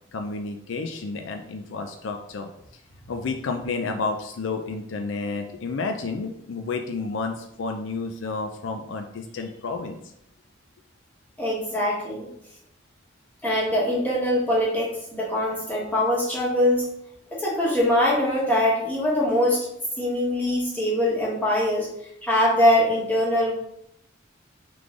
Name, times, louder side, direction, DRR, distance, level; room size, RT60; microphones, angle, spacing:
voice 1, 0.1-2.5 3.1-10.0, left 4 dB, 80° left, 5 dB, 0.4 m, -31 dB
voice 2, 11.4-12.3 13.4-16.9 17.3-19.7 20.0-21.9 22.2-23.5, left 1 dB, 10° left, -5 dB, 1.1 m, -22 dB
3.6 x 3.3 x 3.7 m, 0.76 s
head